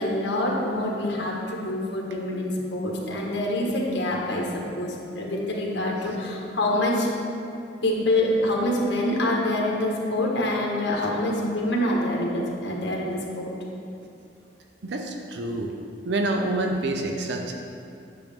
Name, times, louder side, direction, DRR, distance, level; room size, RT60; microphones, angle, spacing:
voice 1, 0.0-7.1 7.8-13.5, left 1 dB, 80° left, -2 dB, 1.5 m, -26 dB
voice 2, 14.8-15.7 16.1-17.5, right 2 dB, 65° right, 3 dB, 0.6 m, -27 dB
9.1 x 6.5 x 3.6 m, 2.6 s
head